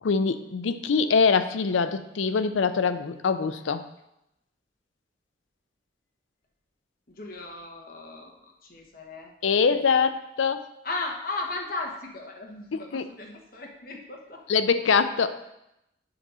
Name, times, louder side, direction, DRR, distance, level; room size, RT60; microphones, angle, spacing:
voice 1, 0.0-3.9 9.4-10.7 12.7-13.1 14.5-15.4, left 5 dB, 85° left, 11 dB, 0.5 m, -24 dB
voice 2, 7.1-9.3 9.7-9.8 10.8-14.4, left 2 dB, 50° left, 1 dB, 1.1 m, -36 dB
7.7 x 3.9 x 6.2 m, 0.85 s
head